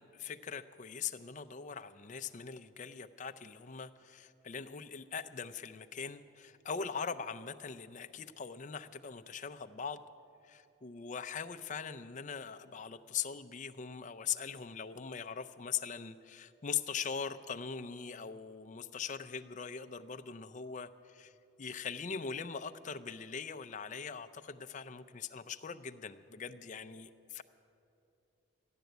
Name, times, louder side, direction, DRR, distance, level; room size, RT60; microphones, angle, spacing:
voice 1, 0.0-10.0 10.4-21.3 21.6-27.4, left 6 dB, 35° left, 10 dB, 0.4 m, -41 dB
13.5 x 10.5 x 7.9 m, 2.7 s
head